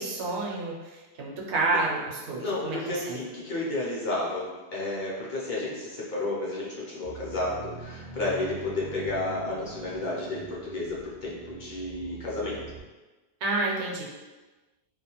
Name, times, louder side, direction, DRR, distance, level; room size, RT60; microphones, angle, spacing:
voice 1, 0.0-3.2 13.4-14.1, right 3 dB, 80° right, -2 dB, 0.9 m, -29 dB
voice 2, 2.4-12.6, left 2 dB, 55° left, -6 dB, 0.6 m, -32 dB
sound 1, 7.0-12.8, right 3 dB, 55° right, 0.4 m, -44 dB
2.3 x 2.2 x 2.9 m, 1.2 s
omnidirectional pair, 1.1 m